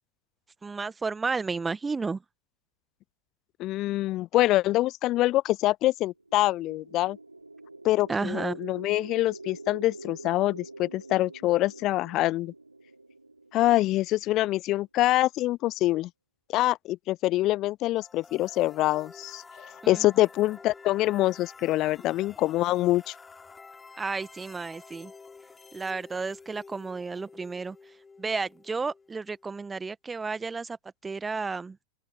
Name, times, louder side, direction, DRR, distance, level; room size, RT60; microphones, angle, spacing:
voice 1, 0.6-2.2 8.1-8.6 19.8-20.1 24.0-25.1 25.7-27.8 28.2-30.8 31.0-31.8, right 4 dB, 15° right, 1.1 m, -32 dB
voice 2, 3.6-7.2 7.8-12.5 13.5-16.1 16.5-19.4 19.9-23.1, left 16 dB, 35° left, 0.3 m, -25 dB
sound 1, 6.2-14.3, right 2 dB, 85° right, 2.2 m, -45 dB
sound 2, 18.0-29.8, left 4 dB, 15° left, 3.4 m, -50 dB
open air
figure-of-eight pair, 90°, 0 cm